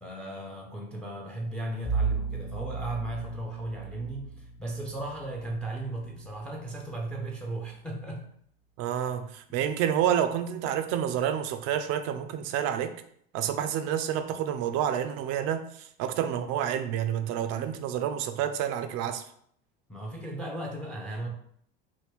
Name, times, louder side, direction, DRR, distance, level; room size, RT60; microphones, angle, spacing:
voice 1, 0.0-8.3 19.9-21.3, right 2 dB, 5° left, 1 dB, 0.5 m, -36 dB
Bowed string instrument, 1.8-6.9, right 5 dB, 40° left, 0.6 m, -35 dB
voice 2, 8.8-13.0 13.3-19.2, right 9 dB, 55° right, 9 dB, 0.5 m, -29 dB
3.1 x 2.1 x 3.4 m, 0.65 s
hypercardioid pair, 90°, 32 cm